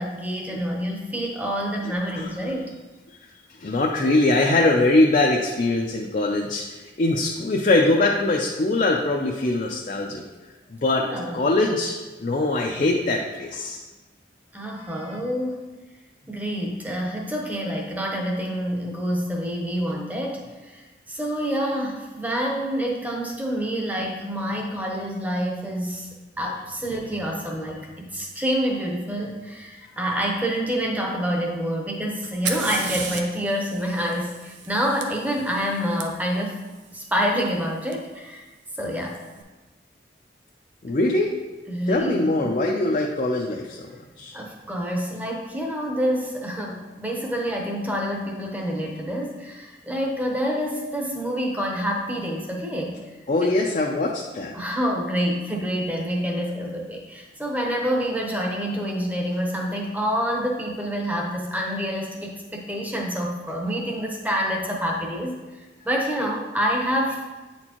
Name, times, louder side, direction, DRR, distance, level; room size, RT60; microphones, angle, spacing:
voice 1, 0.0-2.6 11.0-11.3 14.5-15.6 16.3-20.8 21.1-26.1 26.4-36.6 36.9-38.4 38.8-39.2 41.7-42.5 44.3-53.0 54.5-65.4 65.8-67.2, equal, 10° right, -1 dB, 0.7 m, -27 dB
voice 2, 1.8-2.5 3.6-10.2 10.7-11.0 11.3-11.9 12.2-13.8 14.8-15.2 27.0-27.1 40.8-41.4 41.9-43.9 44.2-44.4 53.3-54.5, left 2 dB, 45° left, 0 dB, 0.4 m, -22 dB
Fire, 32.2-36.0 37.9-38.0 38.9-39.3, right 6 dB, 90° right, 0.6 m, -34 dB
8.6 x 4.3 x 2.9 m, 1.2 s
head